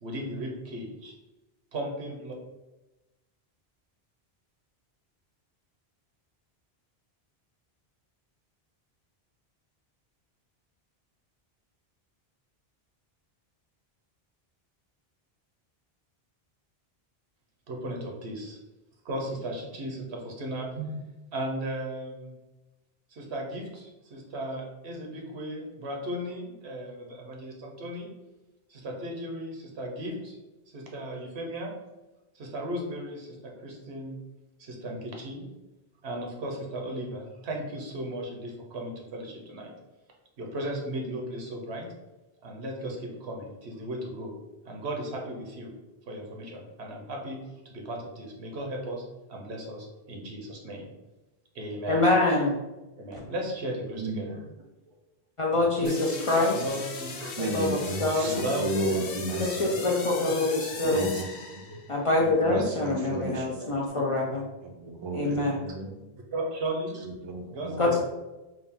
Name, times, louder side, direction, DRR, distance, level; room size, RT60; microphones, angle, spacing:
voice 1, 0.0-1.1 1.7-2.3 17.7-18.6 19.0-20.9 21.3-22.3 23.1-28.1 28.7-30.4 30.7-31.7 32.3-34.2 34.6-35.5 36.0-39.7 40.4-41.9 42.4-44.3 44.6-45.7 46.1-47.4 47.6-49.0 49.3-50.9 51.5-52.0 53.0-54.3 55.5-56.0 56.4-57.6 58.2-59.1 59.7-60.5 60.8-61.0 62.4-62.7 63.3-64.4 65.3-65.6 66.3-67.1 67.5-68.0, right 1 dB, 85° right, 1 dB, 1.1 m, -36 dB
voice 2, 51.9-52.6 55.4-56.6 57.4-58.3 59.3-61.0 61.9-64.4 65.1-65.7 67.8-68.0, left 2 dB, 45° left, -2 dB, 0.4 m, -25 dB
voice 3, 53.9-54.5 57.4-59.8 60.8-61.8 62.2-63.5 64.6-65.9 67.0-68.0, right 2 dB, 45° right, 3 dB, 0.4 m, -33 dB
sound 1, 55.8-62.1, left 4 dB, 70° left, 0.8 m, -39 dB
3.6 x 2.4 x 3.6 m, 1.1 s
omnidirectional pair, 1.1 m